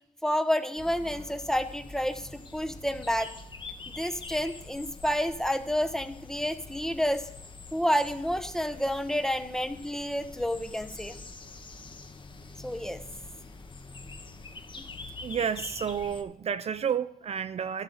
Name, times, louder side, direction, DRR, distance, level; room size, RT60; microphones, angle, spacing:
voice 1, 0.2-3.3 3.9-7.3 7.7-11.1 12.6-13.0, equal, 5° left, 0.9 m, -29 dB
sound 1, 0.8-16.2, left 3 dB, 35° left, 1.0 m, -45 dB
voice 2, 15.2-17.8, right 7 dB, 45° right, 0.4 m, -31 dB
12.5 x 10.5 x 3.9 m
cardioid pair, 95°, 14 cm